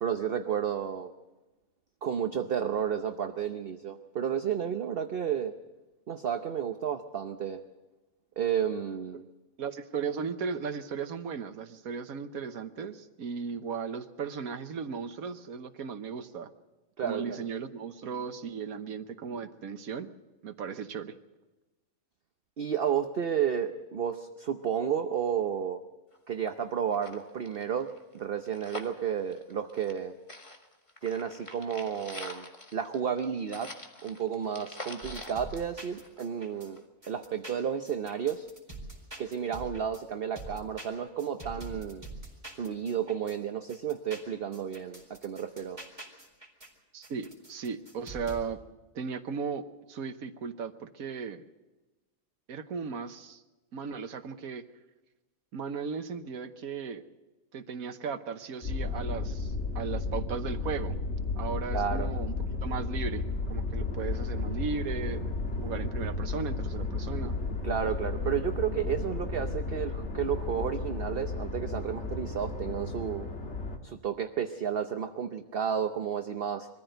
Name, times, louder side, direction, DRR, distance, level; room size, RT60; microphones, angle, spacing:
voice 1, 0.0-1.1 2.0-5.5 6.1-7.6 8.4-9.2 17.0-17.5 22.6-25.8 26.3-27.9 28.1-30.1 31.0-32.5 32.7-33.7 34.0-38.5 39.2-42.1 42.5-45.8 61.7-62.1 67.6-73.3 73.8-76.7, right 8 dB, 50° right, 7 dB, 0.9 m, -32 dB
voice 2, 9.6-16.5 17.0-20.1 20.4-21.1 46.9-48.6 48.9-51.4 52.5-53.4 53.7-54.6 55.5-57.0 57.5-61.0 61.4-62.3 62.6-63.2 63.5-65.3 65.5-67.4, right 6 dB, 85° right, 10 dB, 1.5 m, -36 dB
sound 1, 26.1-26.2 26.5-26.6 26.9-30.0 30.3-36.4 36.8-36.9, left 2 dB, 20° left, 1.7 m, -45 dB
sound 2, 35.0-36.7 37.0-40.0 40.4-43.4 43.7-46.7 47.0-48.4, right 2 dB, 20° right, 3.9 m, -45 dB
sound 3, 58.6-73.8, left 3 dB, 50° left, 2.0 m, -33 dB
23.0 x 14.5 x 7.9 m, 1.1 s
omnidirectional pair, 1.5 m